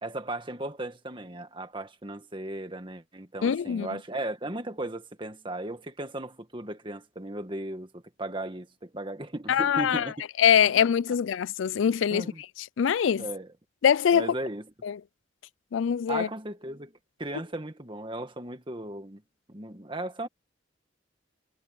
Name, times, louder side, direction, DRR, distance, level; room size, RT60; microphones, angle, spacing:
voice 1, 0.0-10.1 12.1-12.4 13.2-13.5 14.1-14.7 16.1-16.9 17.2-19.2 19.5-20.3, right 1 dB, 25° right, 1.8 m, -36 dB
voice 2, 3.4-3.9 9.5-10.1 10.4-12.3 12.8-13.2 13.8-14.3 14.8-15.0 15.7-16.3, left 8 dB, 80° left, 0.4 m, -23 dB
head